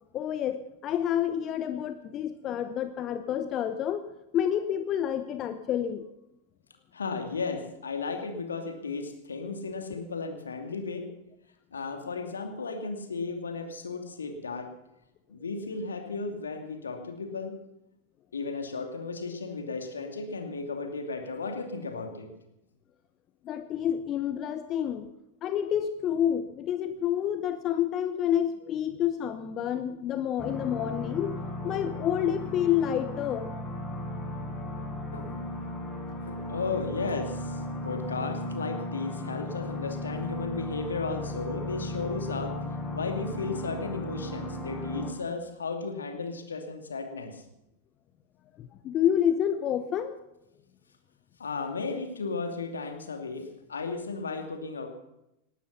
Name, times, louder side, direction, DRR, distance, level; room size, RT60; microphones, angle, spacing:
voice 1, 0.1-4.1 4.3-6.0 23.4-25.1 25.4-31.4 31.6-33.5 48.6-50.2, left 10 dB, 30° left, 10 dB, 0.9 m, -28 dB
voice 2, 6.9-11.1 11.7-14.7 15.3-17.5 18.3-22.3 35.1-35.3 36.2-42.5 42.9-47.4 51.4-54.9, left 4 dB, 70° left, 5 dB, 2.6 m, -34 dB
sound 1, 30.4-45.1, left 1 dB, 15° left, 4.9 m, -36 dB
19.0 x 12.0 x 5.8 m, 0.87 s
figure-of-eight pair, 90°, 0 cm